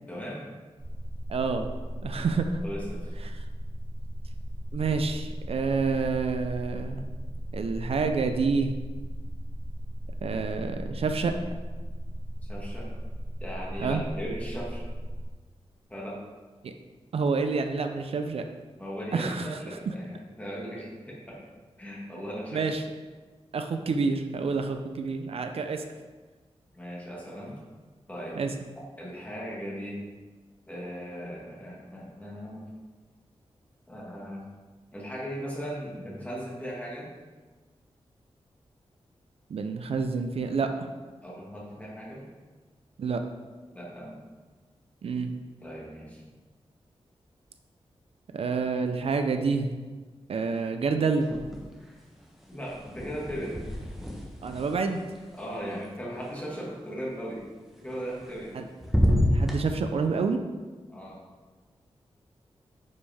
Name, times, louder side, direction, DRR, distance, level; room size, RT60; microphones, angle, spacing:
voice 1, 0.1-0.5 2.6-3.1 12.5-12.9 13.4-14.8 15.9-16.2 18.8-21.5 21.8-22.7 26.7-27.6 28.1-28.4 29.0-30.0 30.7-32.7 33.9-34.4 34.9-37.1 41.2-42.3 43.7-44.2 45.6-46.2 52.5-53.6 55.3-57.5 57.8-58.6 60.9-61.2, equal, 15° left, -5 dB, 1.9 m, -38 dB
sound 1, 0.8-15.3, equal, 20° right, 0.5 m, -36 dB
voice 2, 1.3-1.7 2.0-2.6 3.2-3.4 4.7-7.0 7.5-8.7 10.2-11.4 13.8-14.0 16.6-16.7 17.1-18.4 19.1-19.6 22.5-22.8 23.5-25.8 28.4-28.5 39.5-40.9 43.0-43.2 45.0-45.3 48.3-49.7 50.3-51.3 54.4-55.0 58.5-58.6 59.3-60.4, right 4 dB, 65° right, 6 dB, 0.5 m, -28 dB
sound 2, 51.2-51.9 52.2-56.3 57.9-58.5 58.8-59.6, equal, ahead, 1.0 m, -29 dB
9.5 x 5.2 x 3.5 m, 1.3 s
wide cardioid pair, 150°, 11 cm